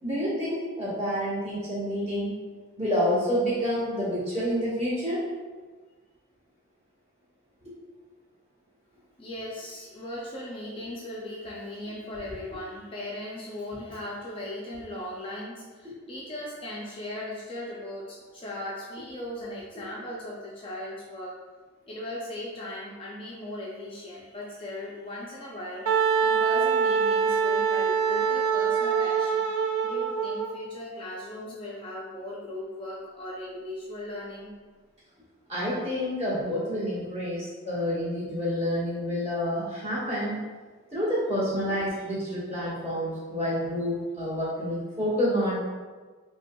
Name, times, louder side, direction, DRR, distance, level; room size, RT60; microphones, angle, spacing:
voice 1, 0.0-2.4 2.8-5.2 7.6-7.7 15.8-15.9 35.5-40.4 40.9-45.6, equal, 30° right, -10 dB, 1.4 m, -28 dB
voice 2, 9.2-21.4 21.9-25.9 26.2-29.5 29.8-34.5, left 1 dB, 25° left, -4 dB, 0.4 m, -38 dB
Wind instrument woodwind instrument, 25.9-30.5, right 6 dB, 85° right, 0.3 m, -24 dB
4.3 x 2.8 x 2.2 m, 1.4 s
head